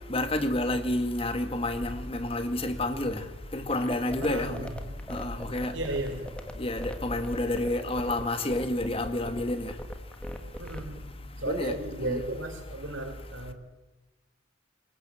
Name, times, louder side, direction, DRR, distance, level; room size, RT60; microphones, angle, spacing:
voice 1, 0.1-3.2 3.5-4.7 5.1-5.7 6.6-9.7 11.5-11.7 12.0-12.2, left 1 dB, 30° left, 1.8 m, -29 dB
sound 1, 3.7-11.0, equal, 5° left, 2.0 m, -39 dB
voice 2, 4.2-6.4 10.6-13.5, right 1 dB, 85° right, 4.8 m, -35 dB
26.5 x 22.0 x 7.7 m
head